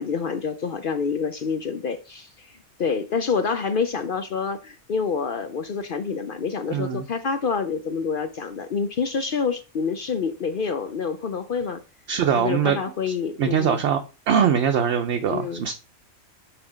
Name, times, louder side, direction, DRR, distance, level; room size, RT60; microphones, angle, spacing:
voice 1, 0.0-11.8 12.3-13.8 15.3-15.6, left 5 dB, 55° left, 0.6 m, -27 dB
voice 2, 6.7-7.0 12.1-12.8 13.1-15.7, right 8 dB, 60° right, 0.9 m, -22 dB
6.0 x 4.0 x 5.0 m
omnidirectional pair, 1.4 m